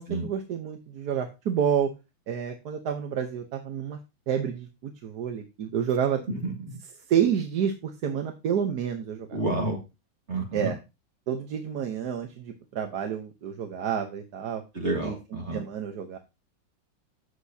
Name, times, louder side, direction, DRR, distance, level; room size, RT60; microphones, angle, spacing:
voice 1, 0.0-1.9 2.3-4.0 4.3-6.2 7.1-9.4 10.5-10.8 11.3-14.6 15.0-15.2 15.5-16.2, right 8 dB, 60° right, 5 dB, 1.4 m, -29 dB
voice 2, 6.3-6.8 9.3-9.8 10.3-10.7 14.7-15.6, right 2 dB, 35° right, 1 dB, 2.5 m, -30 dB
13.0 x 8.3 x 2.8 m, 0.26 s
omnidirectional pair, 2.1 m